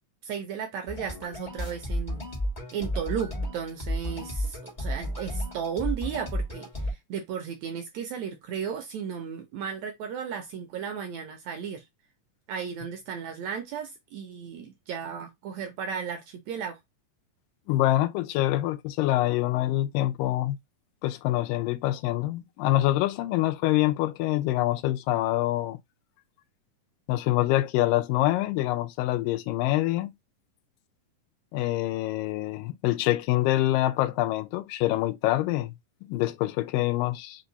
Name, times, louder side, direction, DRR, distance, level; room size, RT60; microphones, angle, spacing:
voice 1, 0.2-2.2 2.7-11.8 12.5-16.8, right 7 dB, 70° right, 1.7 m, -35 dB
sound 1, 0.9-6.9, equal, 35° left, 0.5 m, -32 dB
voice 2, 17.7-20.6 21.0-25.8 27.1-30.1 31.5-37.5, left 15 dB, 90° left, 2.3 m, -25 dB
5.4 x 2.3 x 3.9 m
omnidirectional pair, 3.8 m